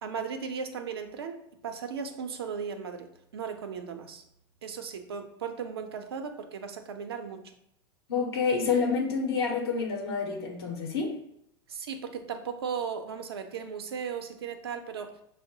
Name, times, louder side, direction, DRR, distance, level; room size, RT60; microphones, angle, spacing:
voice 1, 0.0-4.2 4.6-7.5 11.7-15.1, right 6 dB, 85° right, 6 dB, 0.5 m, -36 dB
voice 2, 8.1-11.2, left 5 dB, 85° left, 0 dB, 0.8 m, -28 dB
5.7 x 2.0 x 2.7 m, 0.75 s
hypercardioid pair, 90°, 13 cm